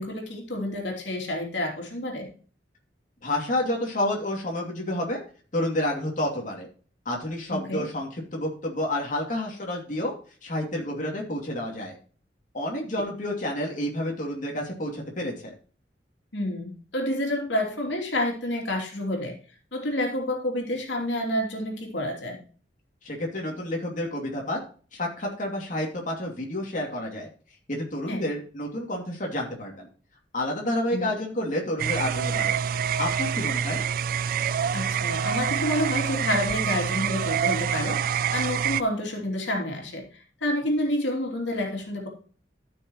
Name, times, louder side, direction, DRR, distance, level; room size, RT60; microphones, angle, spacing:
voice 1, 0.0-2.3 7.5-7.8 16.3-19.4 19.7-22.4 28.1-28.2 30.9-31.1 34.7-40.0 40.4-42.1, left 1 dB, 90° left, 1 dB, 2.9 m, -29 dB
voice 2, 3.2-5.2 5.5-6.7 7.0-10.1 10.4-12.0 12.5-15.5 23.0-24.6 24.9-27.3 27.7-29.9 30.3-32.6 33.0-33.8, left 1 dB, 45° left, 0 dB, 2.6 m, -29 dB
long night frogs dogs donkey, 31.8-38.8, right 8 dB, 50° right, 0.3 m, -26 dB
13.5 x 6.3 x 3.0 m, 0.41 s
head